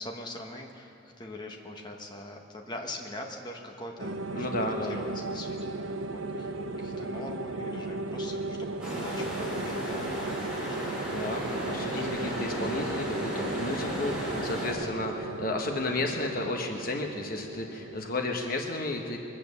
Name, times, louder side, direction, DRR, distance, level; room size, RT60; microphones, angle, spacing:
voice 1, 0.0-11.0 11.7-11.9, left 1 dB, 20° left, 1 dB, 1.2 m, -43 dB
sound 1, 4.0-18.6, right 2 dB, 75° right, 0.7 m, -36 dB
voice 2, 4.4-5.0 11.1-19.2, left 2 dB, 45° left, 3 dB, 1.0 m, -33 dB
sound 2, 8.8-14.7, equal, 5° right, 4.0 m, -35 dB
22.5 x 8.7 x 6.9 m, 2.9 s
head